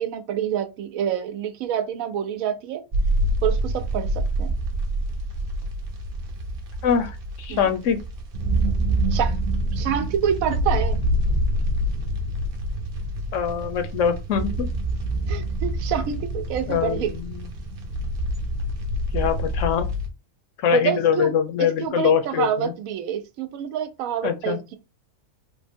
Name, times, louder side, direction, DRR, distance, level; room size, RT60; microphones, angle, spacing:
voice 1, 0.0-2.8 3.4-4.5 7.5-7.8 9.1-9.3 9.7-11.0 15.3-17.1 20.7-21.3 21.6-24.8, right 9 dB, 85° right, 1.0 m, -27 dB
sound 1, 2.9-20.1, right 1 dB, 50° right, 0.8 m, -26 dB
voice 2, 6.8-8.0 13.3-14.7 16.7-17.5 19.1-19.9 20.6-22.7 24.2-24.6, left 7 dB, 70° left, 0.9 m, -23 dB
3.5 x 2.1 x 3.4 m
omnidirectional pair, 1.4 m